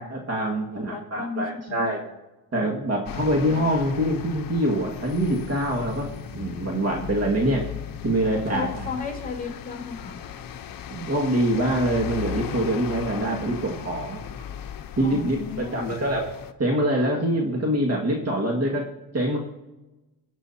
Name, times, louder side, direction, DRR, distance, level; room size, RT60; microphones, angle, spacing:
voice 1, 0.0-2.0 2.5-6.1 6.3-7.7 8.0-8.7 10.9-14.2 15.0-16.3 16.6-18.9 19.1-19.4, right 1 dB, 35° right, -1 dB, 2.0 m, -24 dB
voice 2, 0.9-1.8 3.0-3.2 8.4-10.2 15.0-15.9, left 5 dB, 20° left, 0 dB, 4.6 m, -34 dB
sound 1, 3.1-16.5, left 9 dB, 50° left, 0.9 m, -37 dB
23.0 x 9.0 x 2.8 m, 1.0 s
cardioid pair, 95°, 42 cm